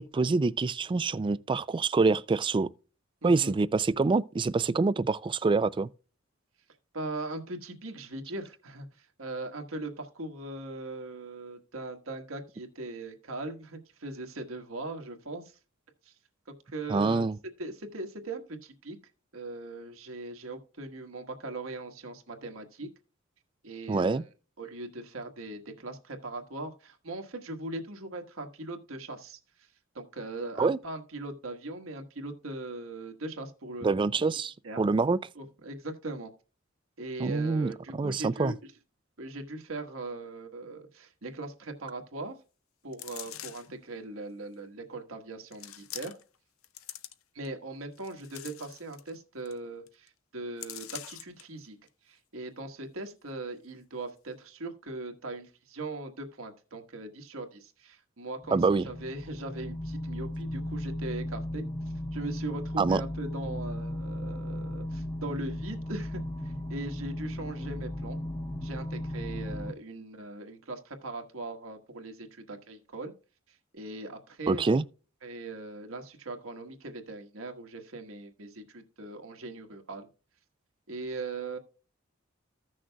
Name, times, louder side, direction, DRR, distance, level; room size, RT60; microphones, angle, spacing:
voice 1, 0.0-2.7 3.2-5.9 16.9-17.4 23.9-24.2 30.6-30.8 33.8-35.2 37.2-38.5 58.5-58.9 62.8-63.0 74.5-74.8, right 3 dB, 25° right, 0.3 m, -26 dB
voice 2, 3.2-3.5 6.9-15.5 16.0-16.1 16.7-17.3 17.6-19.0 19.3-22.9 23.6-24.2 24.6-29.7 29.9-33.9 34.6-34.8 35.3-36.3 37.0-38.7 39.2-42.3 42.8-46.1 47.3-51.8 52.0-61.6 62.1-68.2 68.6-73.1 73.5-74.7 75.2-80.1 80.9-81.6, right 2 dB, 80° right, 1.4 m, -40 dB
sound 1, 42.9-43.8 44.5-44.6 45.5-46.4 46.6-47.5 47.9-49.1 49.5-49.6 49.9-50.1 50.6-51.4 51.9-52.0, left 12 dB, 90° left, 0.7 m, -44 dB
sound 2, 58.4-69.7, left 1 dB, 15° left, 0.7 m, -36 dB
15.5 x 6.3 x 2.3 m
head